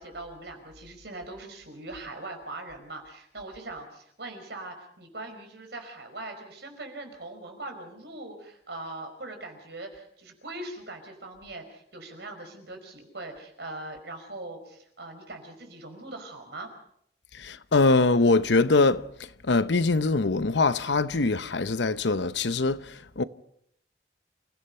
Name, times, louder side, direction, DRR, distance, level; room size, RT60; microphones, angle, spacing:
voice 1, 0.0-16.7, right 2 dB, 70° right, 5.3 m, -41 dB
voice 2, 17.4-19.0 19.5-22.8 23.2-23.3, left 3 dB, 90° left, 0.8 m, -23 dB
28.5 x 16.5 x 5.6 m
head